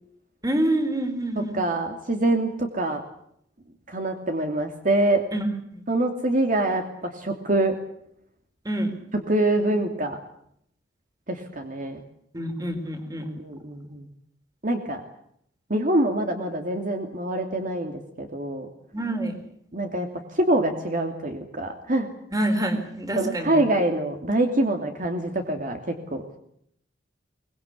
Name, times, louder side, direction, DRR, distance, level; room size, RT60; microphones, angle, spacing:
voice 1, 0.4-1.6 5.3-5.8 8.6-8.9 12.3-13.3 18.9-19.4 22.3-23.6, right 1 dB, 20° right, 8 dB, 4.1 m, -27 dB
voice 2, 1.4-3.0 3.9-5.2 5.9-7.7 9.3-10.2 11.3-12.0 13.2-14.1 14.6-15.0 15.7-18.7 19.7-22.1 23.2-26.2, right 1 dB, 45° right, 5 dB, 2.7 m, -25 dB
24.0 x 21.0 x 8.4 m, 0.70 s
head